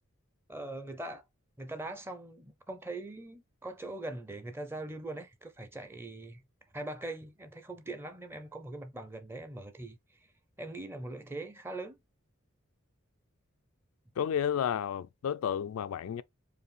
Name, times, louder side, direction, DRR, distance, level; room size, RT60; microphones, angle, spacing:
voice 1, 0.5-1.2 1.6-6.4 6.7-10.3 10.6-12.0, right 2 dB, 10° right, 0.6 m, -41 dB
voice 2, 14.2-16.2, left 8 dB, 85° left, 0.3 m, -31 dB
4.8 x 2.6 x 3.1 m
head